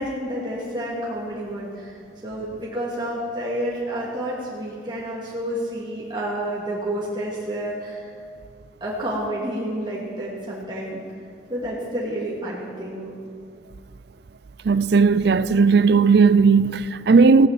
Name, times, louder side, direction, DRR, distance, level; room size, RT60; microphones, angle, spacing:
voice 1, 0.0-8.1 8.8-11.0 11.5-13.1, right 1 dB, 25° right, 2.5 m, -29 dB
voice 2, 14.7-17.5, right 4 dB, 55° right, 0.4 m, -16 dB
16.0 x 10.0 x 7.7 m
head